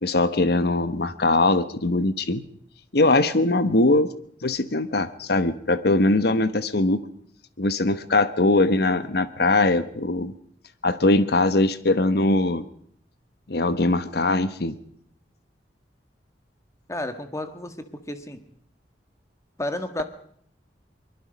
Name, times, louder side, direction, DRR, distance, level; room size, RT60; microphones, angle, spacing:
voice 1, 0.0-2.5 2.9-4.1 4.4-7.0 7.6-10.3 10.8-12.6 13.5-14.7, left 2 dB, 65° left, 13 dB, 1.2 m, -21 dB
voice 2, 16.9-18.4 19.6-20.0, left 1 dB, 20° left, 8 dB, 1.7 m, -32 dB
23.5 x 22.0 x 5.2 m, 0.62 s
head